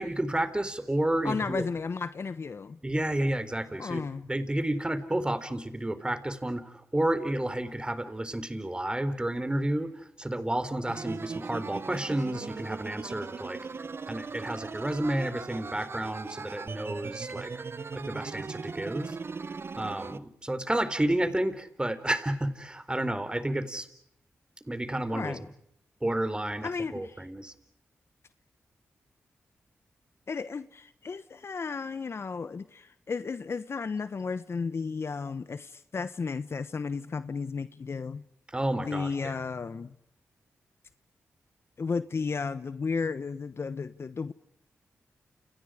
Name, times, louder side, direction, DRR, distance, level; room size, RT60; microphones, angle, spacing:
voice 1, 0.0-1.6 2.8-9.9 10.2-13.6 14.1-17.5 17.9-19.2 19.8-23.9 24.7-25.3 26.0-27.5 38.5-39.4, right 1 dB, 20° right, 4.0 m, -31 dB
voice 2, 1.2-2.8 3.8-4.3 25.1-25.4 26.6-27.2 30.3-38.2 38.8-40.0 41.8-44.3, left 5 dB, 55° left, 1.1 m, -33 dB
sound 1, 10.9-20.2, right 4 dB, 50° right, 1.0 m, -39 dB
29.5 x 29.0 x 5.1 m
cardioid pair, 55°, 5 cm